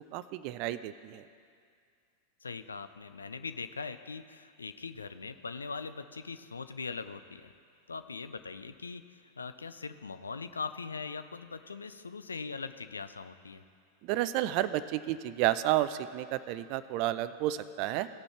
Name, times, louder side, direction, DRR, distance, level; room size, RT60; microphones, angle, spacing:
voice 1, 0.1-1.2 14.0-18.1, right 14 dB, 45° right, 14 dB, 0.4 m, -31 dB
voice 2, 2.4-7.5 7.9-13.6, left 4 dB, 75° left, 11 dB, 0.4 m, -41 dB
17.5 x 6.0 x 3.3 m, 2.2 s
figure-of-eight pair, 90°, 0 cm